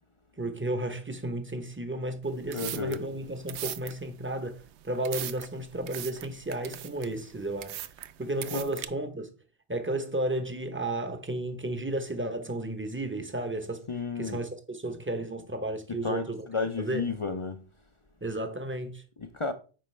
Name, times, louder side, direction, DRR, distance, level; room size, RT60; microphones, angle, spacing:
voice 1, 0.4-7.8 8.2-9.3 9.7-13.9 14.2-16.5 16.8-17.1 18.2-19.0, right 1 dB, 15° right, 0.6 m, -33 dB
sound 1, 2.2-8.9, right 11 dB, 75° right, 0.8 m, -40 dB
voice 2, 2.5-3.0 8.5-8.6 13.9-14.4 15.9-17.6 19.2-19.5, left 4 dB, 50° left, 0.4 m, -32 dB
8.7 x 5.1 x 3.2 m
omnidirectional pair, 1.2 m